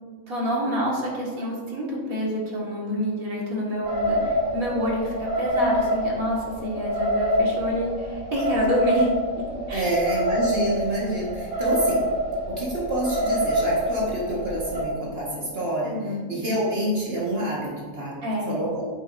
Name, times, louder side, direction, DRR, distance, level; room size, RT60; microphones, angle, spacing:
voice 1, 0.3-9.9 15.9-16.2 18.2-18.6, equal, 85° right, -4 dB, 2.4 m, -28 dB
sound 1, 3.8-14.8, equal, 15° right, 2.6 m, -26 dB
voice 2, 4.4-4.9 9.7-12.0 12.5-18.2 18.5-18.8, right 1 dB, 45° right, -5 dB, 1.9 m, -27 dB
8.8 x 8.1 x 2.6 m, 1.5 s
omnidirectional pair, 1.4 m